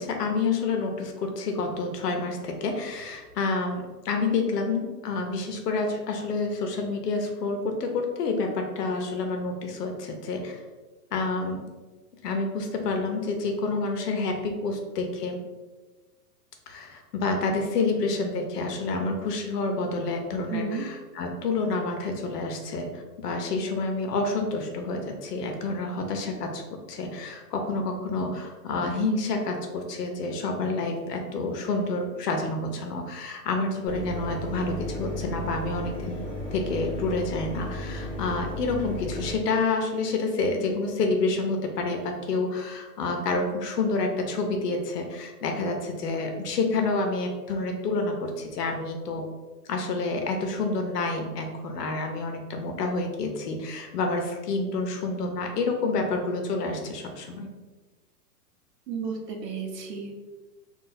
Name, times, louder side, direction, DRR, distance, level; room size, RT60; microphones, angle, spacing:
voice 1, 0.0-10.6 11.1-11.7 12.2-15.4 16.7-36.2 36.5-49.2 49.7-57.5, left 3 dB, 75° left, 3 dB, 0.8 m, -28 dB
voice 2, 20.5-20.9 58.9-60.3, right 5 dB, 85° right, 2 dB, 0.9 m, -33 dB
Mechanisms, 33.9-39.3, left 1 dB, 30° left, 0.9 m, -34 dB
2.6 x 2.4 x 3.8 m, 1.3 s
hypercardioid pair, 175°, 48 cm